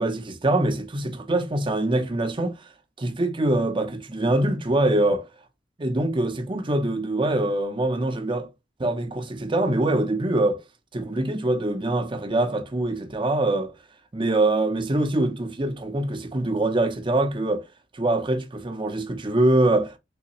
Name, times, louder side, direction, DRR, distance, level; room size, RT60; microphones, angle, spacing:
voice 1, 0.0-2.6 3.0-5.2 5.8-8.5 8.8-10.6 10.9-13.7 14.1-17.6 17.9-20.0, right 2 dB, 25° right, 0.7 m, -24 dB
3.6 x 2.9 x 2.9 m
head